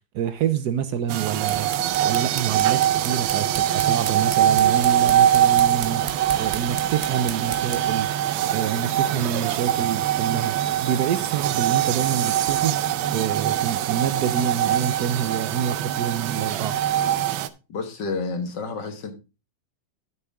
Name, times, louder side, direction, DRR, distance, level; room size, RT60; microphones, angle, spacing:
voice 1, 0.1-1.7 2.0-6.0 6.4-8.1 8.5-16.8, right 8 dB, 70° right, 1.1 m, -27 dB
sound 1, 1.1-17.5, right 11 dB, 85° right, 1.4 m, -23 dB
sound 2, 1.4-8.0, right 6 dB, 50° right, 0.9 m, -37 dB
voice 2, 17.7-19.1, left 4 dB, 65° left, 2.1 m, -30 dB
12.0 x 6.5 x 3.5 m
omnidirectional pair, 2.1 m